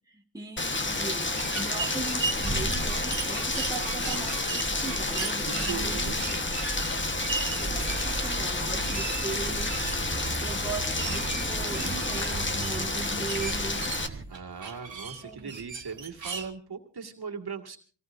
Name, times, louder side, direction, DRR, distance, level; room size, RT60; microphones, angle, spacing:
voice 1, 0.1-6.7 7.4-9.9 10.4-13.9 15.2-15.5, right 3 dB, 10° right, 1.7 m, -39 dB
Rain, 0.6-14.1, left 2 dB, 25° left, 1.3 m, -30 dB
sound 1, 0.7-14.3, right 2 dB, 30° right, 1.5 m, -37 dB
sound 2, 1.4-16.5, right 4 dB, 80° right, 2.1 m, -38 dB
voice 2, 3.5-4.6 5.4-6.4 7.7-7.8 9.8-10.5 14.3-17.8, right 5 dB, 60° right, 2.1 m, -40 dB
25.5 x 18.5 x 2.7 m
wide cardioid pair, 105°, 44 cm